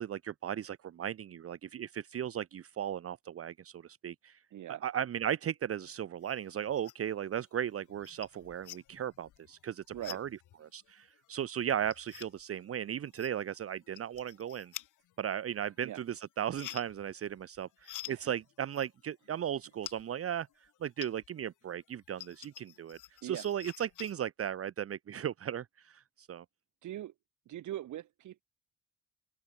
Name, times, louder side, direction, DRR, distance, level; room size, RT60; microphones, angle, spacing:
voice 1, 0.0-4.4 4.7-10.3 10.6-14.7 15.2-26.4, right 9 dB, 50° right, 1.0 m, -36 dB
voice 2, 4.5-4.8 9.9-10.2 15.8-16.0 18.0-18.2 23.2-23.5 26.8-27.1 27.5-28.4, right 13 dB, 75° right, 2.6 m, -41 dB
sound 1, 6.2-7.2 7.5-21.5 21.8-24.1, left 14 dB, 85° left, 6.6 m, -50 dB
open air
cardioid pair, 90°, 30 cm